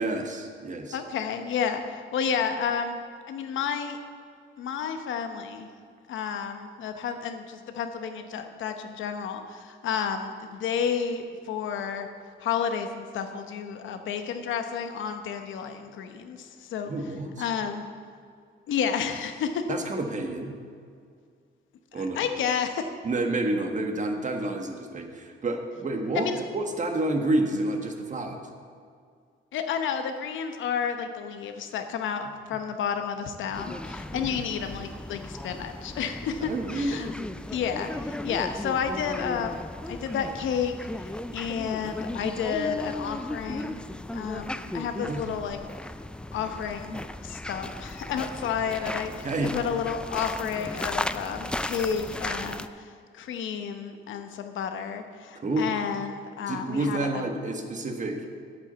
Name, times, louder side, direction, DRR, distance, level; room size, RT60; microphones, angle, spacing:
voice 1, 0.0-1.0 16.8-17.5 19.7-20.5 21.9-22.3 23.0-28.4 34.1-34.3 36.4-37.0 45.0-45.2 49.2-49.6 55.3-55.7 56.5-58.2, right 2 dB, 40° right, 4 dB, 1.5 m, -29 dB
voice 2, 0.9-3.0 3.3-4.0 4.6-5.7 6.1-12.1 12.4-16.9 17.4-17.8 18.7-19.6 21.9-22.9 26.1-26.4 29.5-37.1 37.5-39.6 39.9-43.8 44.1-45.6 46.3-57.2, left 7 dB, 75° left, 7 dB, 1.0 m, -31 dB
sound 1, 33.5-52.7, left 1 dB, 5° left, 0.3 m, -36 dB
8.5 x 8.2 x 6.8 m, 2.2 s
cardioid pair, 90°, 20 cm